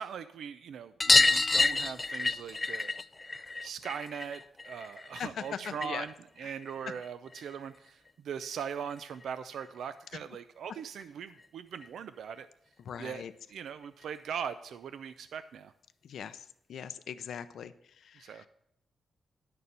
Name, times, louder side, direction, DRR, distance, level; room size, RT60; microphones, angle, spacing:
voice 1, 0.0-2.9 3.6-12.5 13.0-13.2 13.5-15.7 18.2-18.5, right 7 dB, 80° right, 12 dB, 0.4 m, -40 dB
sound 1, 1.0-6.1 6.4-7.5 8.9-9.0 9.2-9.3 9.6-9.7 11.0-11.1 11.4-11.5 11.8-11.9 13.1-13.2 14.0-14.1, left 3 dB, 30° left, 0.3 m, -28 dB
voice 2, 12.9-13.3 16.0-18.4, left 8 dB, 80° left, 12 dB, 0.6 m, -41 dB
10.5 x 6.8 x 5.4 m, 0.75 s
cardioid pair, 90°, 0 cm